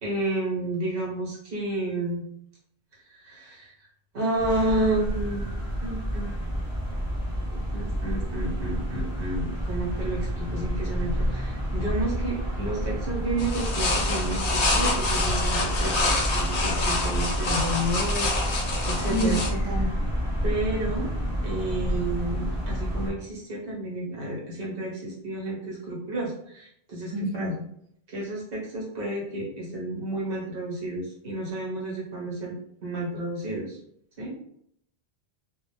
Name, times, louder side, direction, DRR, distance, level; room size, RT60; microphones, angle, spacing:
voice 1, 0.0-2.2 3.1-3.7 4.1-5.5 5.8-6.4 7.7-19.4 20.4-21.1 21.4-27.5 28.1-32.5 32.8-33.8 34.2-34.3, right 1 dB, 60° right, -5 dB, 1.0 m, -31 dB
sound 1, 4.4-23.1, equal, 5° right, 0.9 m, -29 dB
sound 2, 13.4-19.5, left 3 dB, 60° left, 0.7 m, -27 dB
voice 2, 19.1-19.9 27.1-27.5, equal, 40° right, -2 dB, 0.6 m, -28 dB
2.1 x 2.1 x 3.0 m, 0.70 s
omnidirectional pair, 1.1 m